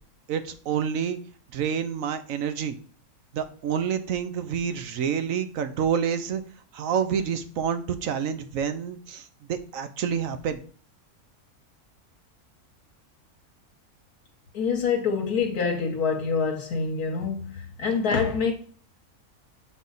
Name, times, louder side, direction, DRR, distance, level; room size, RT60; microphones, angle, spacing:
voice 1, 0.3-1.2 1.5-2.8 3.3-6.4 6.7-10.6, right 7 dB, 65° right, 1.1 m, -28 dB
voice 2, 14.5-18.5, left 5 dB, 80° left, 1.4 m, -26 dB
7.3 x 4.0 x 3.9 m
omnidirectional pair, 1.6 m